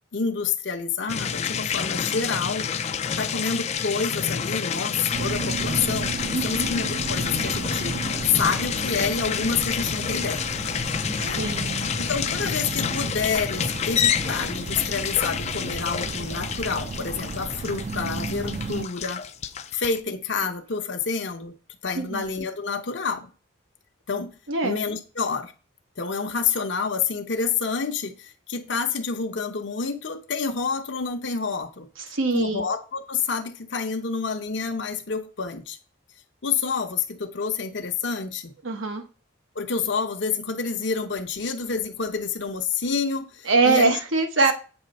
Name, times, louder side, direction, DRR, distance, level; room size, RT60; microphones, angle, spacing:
voice 1, 0.1-2.7 3.2-6.1 6.4-8.0 8.3-10.5 11.2-11.5 12.0-19.2 19.7-21.5 21.8-23.3 24.1-24.3 24.6-25.5 26.0-31.9 32.3-35.8 36.4-38.5 39.5-44.0 44.4-44.5, left 5 dB, 65° left, 4 dB, 0.8 m, -28 dB
sound 1, 1.1-20.0, left 7 dB, 35° left, 0.4 m, -29 dB
sound 2, 5.1-18.9, right 4 dB, 35° right, 0.4 m, -34 dB
voice 2, 6.3-6.7 11.2-11.9 21.9-22.2 24.5-24.8 32.1-32.6 38.6-39.0 43.5-44.5, right 3 dB, 90° right, 6 dB, 1.1 m, -23 dB
7.9 x 3.2 x 5.3 m, 0.36 s
head